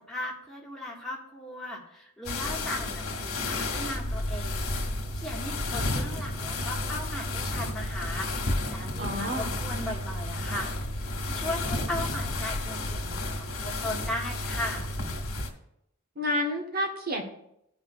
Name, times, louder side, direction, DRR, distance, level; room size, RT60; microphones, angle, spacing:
voice 1, 0.1-14.9, left 1 dB, ahead, -5 dB, 1.7 m, -37 dB
sound 1, 2.2-15.5, left 2 dB, 80° left, 1.6 m, -32 dB
voice 2, 9.0-9.5 16.2-17.2, equal, 45° right, 3 dB, 1.2 m, -29 dB
14.5 x 5.6 x 2.4 m, 0.77 s
head